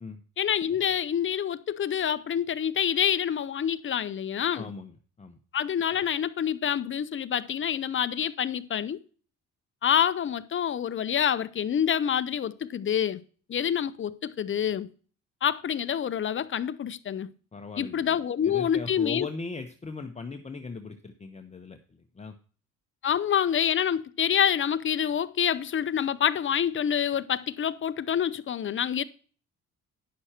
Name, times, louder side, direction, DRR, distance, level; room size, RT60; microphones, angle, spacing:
voice 1, 0.4-4.7 5.5-9.0 9.8-13.2 13.5-14.9 15.4-17.3 17.8-19.3 23.0-29.0, left 9 dB, 40° left, 0.7 m, -27 dB
voice 2, 4.5-5.4 17.5-22.4, left 4 dB, 20° left, 0.9 m, -39 dB
10.5 x 6.4 x 4.3 m
cardioid pair, 90°, 30 cm